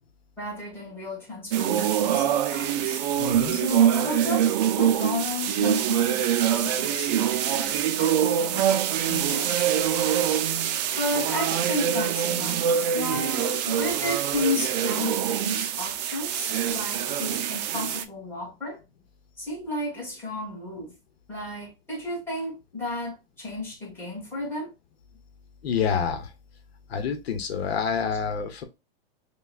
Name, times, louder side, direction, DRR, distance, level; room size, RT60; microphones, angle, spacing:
voice 1, 0.4-3.0 3.5-8.7 9.0-9.7 11.0-12.6 12.9-18.8 19.4-20.9 21.3-24.7 28.1-28.2, left 2 dB, 5° left, 1.7 m, -33 dB
sound 1, 1.5-18.0, right 9 dB, 45° right, 0.5 m, -24 dB
voice 2, 3.1-3.6 25.6-26.3 26.9-28.6, left 6 dB, 85° left, 0.9 m, -27 dB
5.4 x 2.3 x 2.4 m
supercardioid pair, 155°, 30 cm